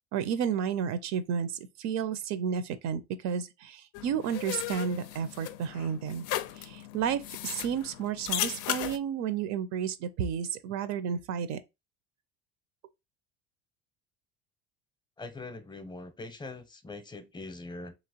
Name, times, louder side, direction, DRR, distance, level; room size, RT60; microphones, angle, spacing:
voice 1, 0.1-6.2 6.5-11.6, right 7 dB, 55° right, 0.5 m, -32 dB
sound 1, 3.9-9.0, left 13 dB, 70° left, 0.5 m, -36 dB
voice 2, 15.2-17.9, left 3 dB, 15° left, 0.7 m, -42 dB
3.0 x 2.9 x 2.8 m
supercardioid pair, 100°, 33 cm